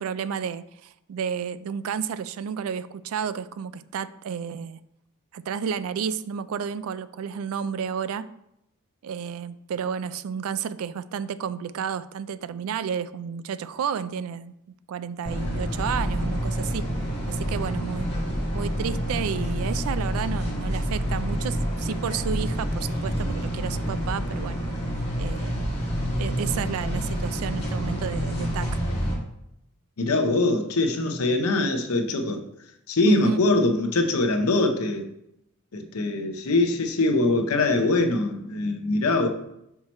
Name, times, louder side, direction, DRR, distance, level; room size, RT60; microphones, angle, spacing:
voice 1, 0.0-4.8 5.3-8.3 9.0-14.5 14.9-16.9 17.3-18.1 18.5-24.6 25.2-25.8 26.2-28.7 33.1-33.4, right 7 dB, 70° right, 0.3 m, -31 dB
sound 1, 15.3-29.1, equal, 25° left, 1.8 m, -28 dB
voice 2, 30.0-32.4 32.9-35.0 35.7-39.3, left 2 dB, 75° left, 0.7 m, -23 dB
5.7 x 4.4 x 4.3 m
head